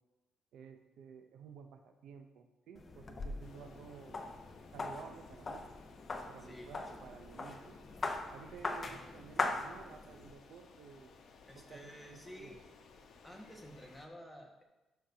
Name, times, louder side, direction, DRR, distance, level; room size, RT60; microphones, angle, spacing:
voice 1, 0.5-4.2 4.7-5.7 6.3-7.8 8.3-11.1 11.6-12.6, right 6 dB, 80° right, 6 dB, 0.7 m, -53 dB
sound 1, 2.7-10.3, left 3 dB, 35° left, 0.9 m, -41 dB
sound 2, 3.4-14.1, left 4 dB, 65° left, 1.0 m, -59 dB
voice 2, 6.4-7.0 11.5-12.6 13.2-14.6, equal, 5° left, 0 dB, 1.6 m, -52 dB
11.5 x 6.5 x 2.8 m, 1.0 s
cardioid pair, 90°, 0 cm